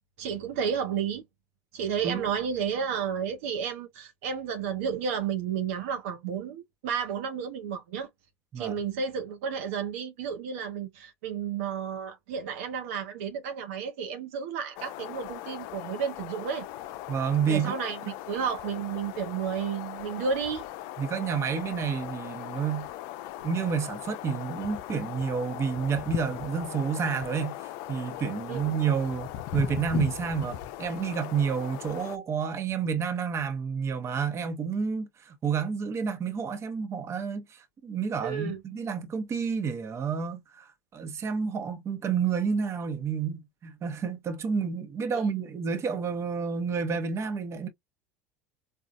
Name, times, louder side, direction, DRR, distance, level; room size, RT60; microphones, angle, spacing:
voice 1, 0.2-1.2 1.7-8.1 8.6-16.7 17.5-20.6 28.5-28.7 38.2-38.6 45.1-45.2, right 7 dB, 75° right, 0.7 m, -32 dB
sound 1, 14.8-32.2, left 14 dB, 65° left, 0.4 m, -39 dB
voice 2, 17.1-17.8 21.0-22.9 23.4-27.6 27.9-29.3 29.5-47.7, right 6 dB, 35° right, 0.9 m, -30 dB
4.0 x 2.3 x 2.4 m
hypercardioid pair, 80°, 8 cm